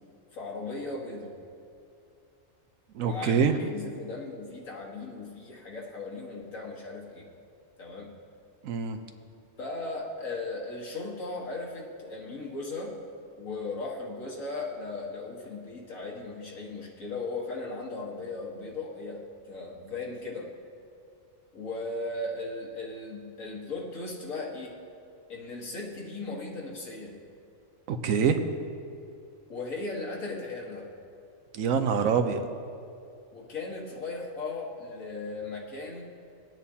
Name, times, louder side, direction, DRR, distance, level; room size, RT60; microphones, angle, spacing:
voice 1, 0.3-1.4 3.0-7.3 7.8-8.1 9.6-13.0 13.4-20.5 21.5-24.8 25.3-27.2 29.5-30.9 33.3-36.0, left 3 dB, 85° left, -2 dB, 1.9 m, -37 dB
voice 2, 2.9-3.5 8.6-9.0 27.9-28.4 31.5-32.4, right 6 dB, 85° right, 8 dB, 1.1 m, -25 dB
19.0 x 9.0 x 2.8 m, 2.5 s
omnidirectional pair, 1.3 m